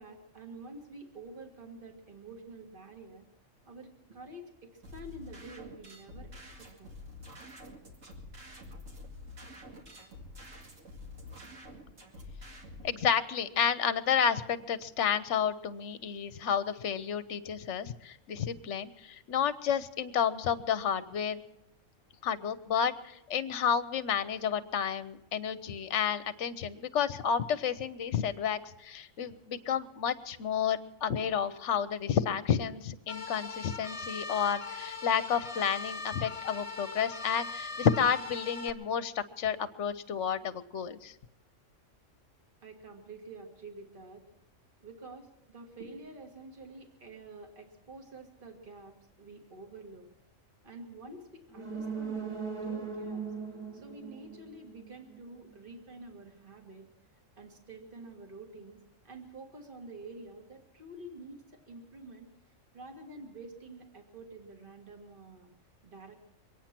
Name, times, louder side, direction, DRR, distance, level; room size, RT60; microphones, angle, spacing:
voice 1, 0.0-3.3 3.7-6.9 42.6-44.3 44.8-50.1 50.6-53.2 53.7-56.9 57.4-65.5 65.8-66.2, right 2 dB, 40° right, 3 dB, 2.1 m, -48 dB
sound 1, 4.8-12.9, left 1 dB, 75° right, 2.6 m, -48 dB
voice 2, 12.8-21.4 22.2-41.1, left 7 dB, 65° left, 14 dB, 1.1 m, -31 dB
sound 2, 33.1-38.7, left 4 dB, 25° left, 1.1 m, -40 dB
sound 3, 51.5-55.2 55.5-55.6, right 5 dB, 25° right, 1.3 m, -39 dB
24.0 x 9.2 x 5.9 m, 0.93 s
omnidirectional pair, 1.3 m